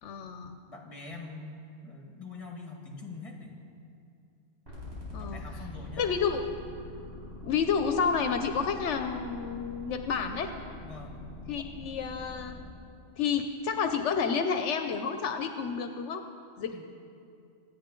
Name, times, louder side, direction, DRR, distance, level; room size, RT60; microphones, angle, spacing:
voice 1, 0.0-0.6 5.1-5.4 6.0-6.5 7.4-10.5 11.5-12.6 13.2-16.2 16.6-16.8, left 6 dB, 80° left, 7 dB, 1.0 m, -30 dB
voice 2, 0.7-3.6 5.2-6.4 10.8-11.2 16.7-16.8, left 3 dB, 30° left, 1 dB, 1.8 m, -44 dB
sound 1, 4.7-12.7, left 2 dB, 65° right, 4.6 m, -44 dB
25.5 x 9.4 x 3.8 m, 2.5 s
omnidirectional pair, 1.2 m